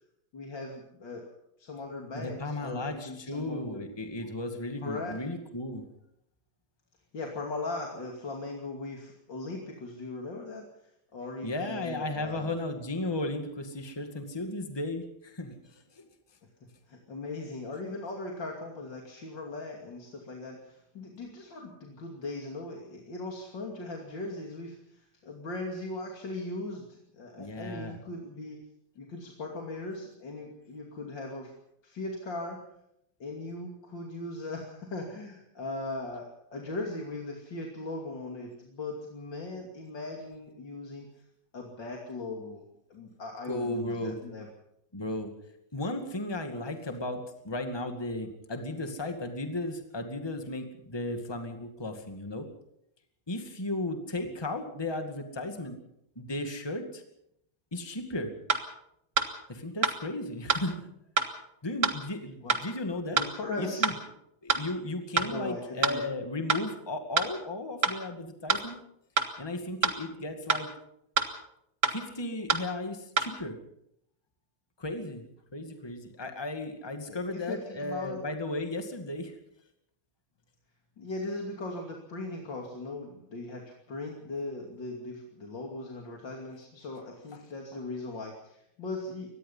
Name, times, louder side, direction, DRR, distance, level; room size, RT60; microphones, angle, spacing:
voice 1, 0.3-1.2 1.6-3.8 4.8-5.1 7.1-10.7 11.1-12.5 16.9-28.6 29.0-31.5 31.8-32.6 33.2-41.1 41.5-42.6 42.9-44.5 62.4-62.6 63.1-63.9 65.3-66.0 77.1-78.2 81.0-89.3, left 2 dB, 70° left, 0 dB, 3.4 m, -39 dB
voice 2, 2.1-5.9 11.4-16.1 27.4-28.0 43.5-44.2 44.9-45.3 45.7-52.4 53.3-55.8 56.2-57.0 57.7-58.3 59.5-60.9 61.6-63.2 63.6-64.0 64.4-68.8 69.4-70.7 71.9-73.6 74.8-75.2 75.5-79.3 87.3-87.4, left 2 dB, 15° left, 5 dB, 2.1 m, -35 dB
sound 1, 58.5-58.6 59.2-59.3 59.8-60.0 60.5-60.6 61.2-61.3 61.8-62.0 62.5-62.6 63.2-63.3 63.8-64.0 64.5-64.6 65.2-65.3 65.8-66.0 66.5-66.6 67.2-67.3 67.8-68.0 68.5-68.6 69.2-69.3 69.8-70.0 70.5-70.6 71.2-71.3 71.8-72.0 72.5-72.6 73.2-73.3, right 4 dB, 45° right, 2.1 m, -25 dB
24.0 x 19.5 x 5.7 m, 0.77 s
omnidirectional pair, 2.1 m